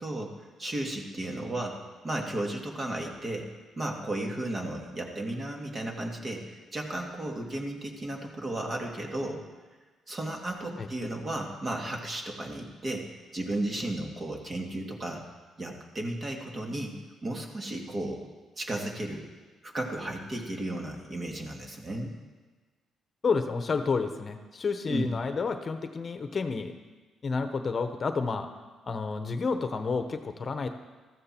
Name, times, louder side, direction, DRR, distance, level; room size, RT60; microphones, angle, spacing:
voice 1, 0.0-1.8 2.0-3.5 3.8-9.4 10.1-15.2 15.6-17.0 17.2-18.2 18.6-19.3 19.6-22.1 24.9-25.1, right 1 dB, 35° right, 1 dB, 2.4 m, -34 dB
voice 2, 23.2-26.8 27.2-28.5 28.9-30.7, left 4 dB, 40° left, 8 dB, 1.0 m, -30 dB
14.0 x 14.0 x 4.5 m, 1.3 s
cardioid pair, 90°, 0 cm